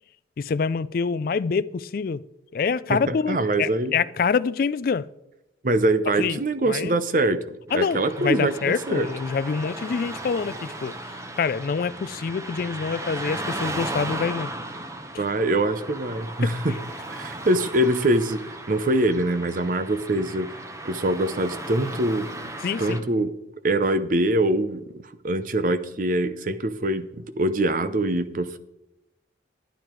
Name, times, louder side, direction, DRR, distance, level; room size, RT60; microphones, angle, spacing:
voice 1, 0.4-2.2 2.5-5.1 6.2-6.4 6.7-6.9 7.7-10.9 11.4-14.5 15.1-15.2 16.4-16.5 22.6-23.0, left 5 dB, 50° left, 0.3 m, -26 dB
voice 2, 2.9-3.9 5.6-7.4 7.7-9.1 15.2-16.8 17.1-20.5 20.8-22.5 22.8-23.3 23.6-28.6, right 1 dB, 45° right, 0.7 m, -24 dB
Car passing by / Traffic noise roadway noise, 7.7-23.0, right 1 dB, 15° right, 0.9 m, -36 dB
12.0 x 9.2 x 4.6 m
head